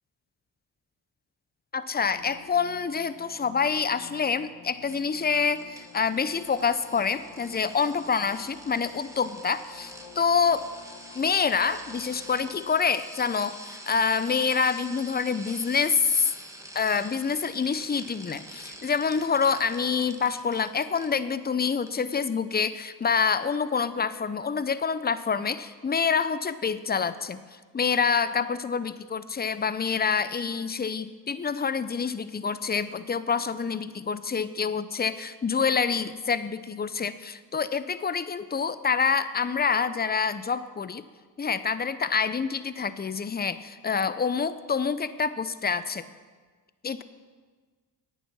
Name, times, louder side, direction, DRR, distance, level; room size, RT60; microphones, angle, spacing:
voice 1, 1.7-10.7 11.1-16.3 16.7-27.4 27.7-41.0 41.4-46.0 46.8-47.0, left 6 dB, 20° left, 14 dB, 0.6 m, -27 dB
sound 1, 2.0-12.7, left 4 dB, 55° left, 1.9 m, -50 dB
sound 2, 4.9-21.3 21.6-21.9 22.2-22.3, right 1 dB, 5° right, 1.7 m, -46 dB
10.0 x 9.0 x 5.9 m, 1.5 s
supercardioid pair, 45°, 49 cm